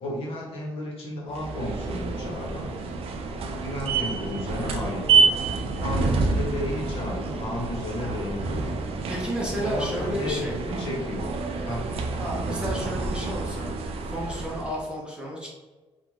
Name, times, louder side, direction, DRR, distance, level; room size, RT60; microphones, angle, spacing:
voice 1, 0.0-2.7 3.6-5.4 5.8-8.8 9.6-11.3 11.6-11.9, left 1 dB, 60° left, -3 dB, 0.9 m, -33 dB
sound 1, 1.3-14.8, right 4 dB, 60° right, 0.4 m, -28 dB
voice 2, 9.1-10.6 12.2-13.7 14.1-15.5, equal, 10° right, -4 dB, 0.6 m, -32 dB
2.5 x 2.2 x 3.0 m, 1.2 s
cardioid pair, 135°, 11 cm